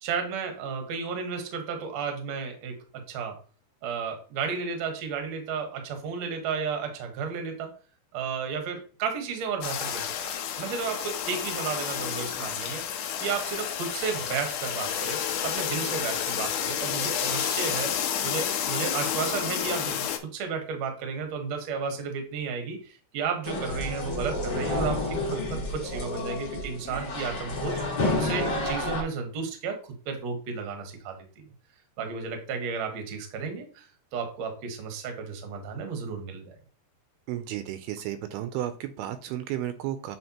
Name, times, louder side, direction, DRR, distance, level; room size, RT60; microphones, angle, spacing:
voice 1, 0.0-3.4 3.8-7.7 8.1-10.1 10.6-12.8 13.2-17.9 18.2-27.8 28.1-29.8 30.1-31.5 32.0-33.9 34.1-36.6, right 5 dB, 60° right, 5 dB, 1.9 m, -33 dB
sound 1, 9.6-20.2, left 9 dB, 80° left, 1.9 m, -30 dB
sound 2, 23.4-29.0, left 2 dB, 45° left, 1.5 m, -30 dB
voice 2, 37.3-40.2, right 12 dB, 85° right, 10 dB, 2.5 m, -33 dB
7.8 x 4.5 x 2.9 m, 0.37 s
omnidirectional pair, 4.6 m